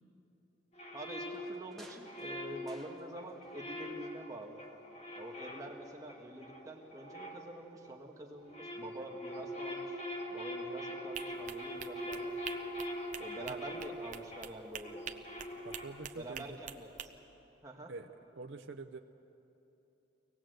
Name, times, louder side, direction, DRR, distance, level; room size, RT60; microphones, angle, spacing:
sound 1, 0.7-8.0 8.4-16.3, equal, 35° left, 1.6 m, -43 dB
voice 1, 0.9-4.6 5.1-10.0 10.3-12.4 13.2-15.1 16.2-17.1 17.6-17.9, right 1 dB, 20° right, 0 dB, 1.6 m, -47 dB
sound 2, 1.1-3.5 3.8-4.9 5.2-5.3, right 1 dB, ahead, 1.3 m, -59 dB
sound 3, 11.1-17.1, right 8 dB, 40° right, 0.8 m, -46 dB
voice 2, 15.6-16.6 17.9-18.1 18.3-19.0, right 3 dB, 80° right, 4 dB, 0.7 m, -46 dB
24.0 x 19.0 x 7.9 m, 2.9 s
head